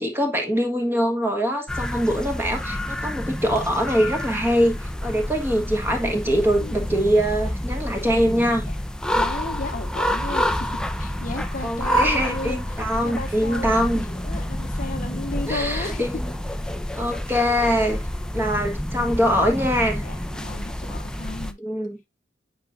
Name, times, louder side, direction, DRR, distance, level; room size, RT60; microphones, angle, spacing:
voice 1, 0.0-8.6 11.6-14.0 15.5-16.3 16.9-18.0 18.3-20.0 21.6-22.0, equal, 10° right, 1.5 m, -23 dB
sound 1, 1.7-21.5, equal, 5° left, 0.5 m, -28 dB
voice 2, 9.1-16.0 20.0-21.6, left 2 dB, 45° left, 0.8 m, -34 dB
8.0 x 5.0 x 2.5 m
head